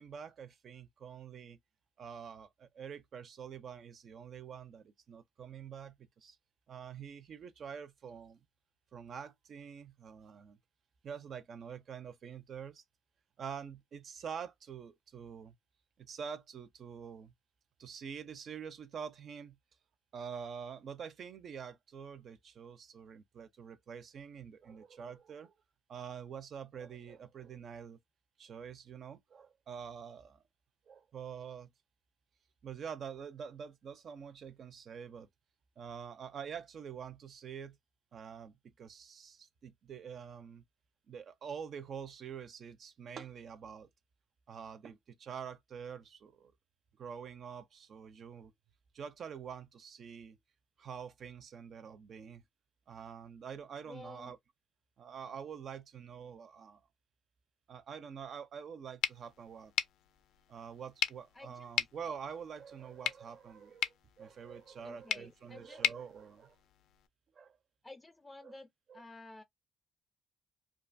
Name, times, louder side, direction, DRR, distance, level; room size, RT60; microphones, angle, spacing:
voice 1, 0.0-1.6 2.0-6.4 6.7-8.4 8.9-10.6 11.0-12.8 13.4-15.5 16.0-17.3 17.8-19.6 20.1-25.5 25.9-28.0 28.4-30.4 30.9-31.7 32.6-35.3 35.8-37.8 38.1-40.6 41.1-43.9 44.5-46.5 47.0-48.5 48.9-50.4 50.8-52.4 52.9-54.4 55.0-56.8 57.7-59.7 60.5-66.6 67.4-67.6 68.4-68.6 68.9-69.0, right 7 dB, 60° right, 0.4 m, -46 dB
voice 2, 53.9-54.3 61.3-61.7 64.8-65.8 67.8-69.4, left 2 dB, 20° left, 0.4 m, -52 dB
sound 1, 59.0-67.1, left 10 dB, 85° left, 0.3 m, -39 dB
2.7 x 2.3 x 2.5 m
cardioid pair, 90°, 0 cm